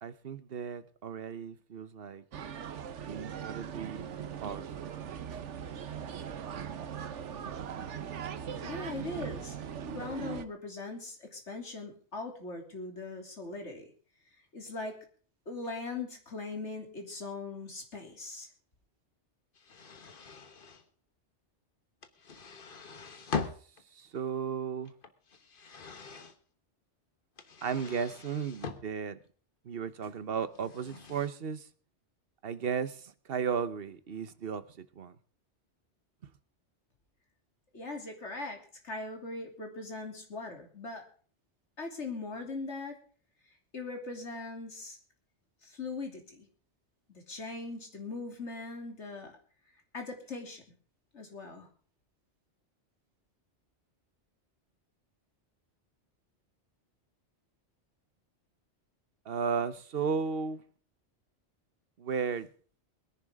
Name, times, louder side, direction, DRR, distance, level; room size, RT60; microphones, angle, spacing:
voice 1, 0.0-2.2 3.0-4.0 4.4-4.7 5.3-5.4 7.8-7.9 23.9-24.9 27.6-29.2 29.6-31.7 32.4-35.2 36.2-36.3 59.2-60.6 62.0-62.5, right 6 dB, 55° right, 1.1 m, -35 dB
sound 1, 2.3-10.5, right 8 dB, 85° right, 1.2 m, -40 dB
voice 2, 8.6-9.6 9.8-13.9 14.5-15.0 15.5-18.5 37.7-38.6 38.8-41.0 41.8-42.9 43.7-45.0 45.6-46.5 47.1-49.3 49.9-50.6 51.1-51.7, left 3 dB, 75° left, 3.3 m, -40 dB
sound 2, 19.5-20.8 22.0-23.8 24.8-26.3 27.4-28.8 30.4-31.3, left 5 dB, 50° left, 1.4 m, -41 dB
22.5 x 10.5 x 3.6 m
omnidirectional pair, 1.2 m